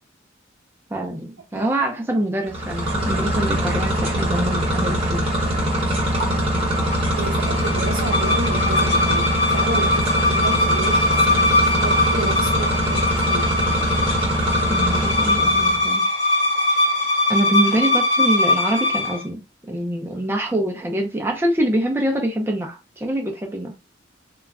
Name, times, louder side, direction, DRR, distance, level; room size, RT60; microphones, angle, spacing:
voice 1, 0.9-5.2 14.7-16.0 17.3-19.4 19.7-23.7, right 1 dB, 10° right, 0.4 m, -24 dB
sound 1, 2.5-15.9, equal, 30° right, 0.8 m, -23 dB
sound 2, 6.5-19.2, left 2 dB, 35° left, 0.9 m, -21 dB
voice 2, 7.2-13.5 17.6-17.8, right 3 dB, 75° right, 0.5 m, -31 dB
2.2 x 2.0 x 3.4 m
head